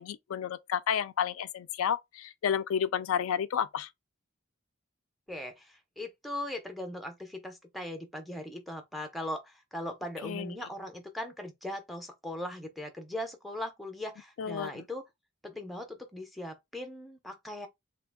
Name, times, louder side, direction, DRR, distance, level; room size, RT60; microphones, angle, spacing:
voice 1, 0.0-3.9 10.2-10.5 14.4-14.8, left 8 dB, 85° left, 0.3 m, -31 dB
voice 2, 5.3-15.0 15.4-17.7, left 1 dB, ahead, 0.5 m, -39 dB
3.2 x 2.3 x 3.5 m
head